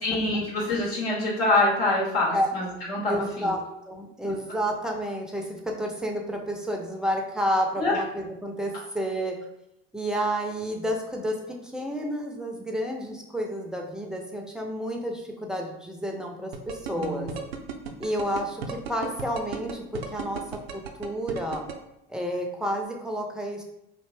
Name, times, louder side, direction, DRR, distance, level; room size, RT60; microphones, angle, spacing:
voice 1, 0.0-3.5 4.2-4.3 7.8-7.9 17.0-17.3, left 2 dB, 75° left, -4 dB, 0.9 m, -25 dB
voice 2, 3.1-9.4 9.9-17.3 18.0-21.6 22.1-23.6, equal, ahead, 1 dB, 0.4 m, -30 dB
sound 1, 16.5-21.7, right 7 dB, 80° right, 0.5 m, -34 dB
2.5 x 2.1 x 3.2 m, 0.84 s
hypercardioid pair, 75°, 30 cm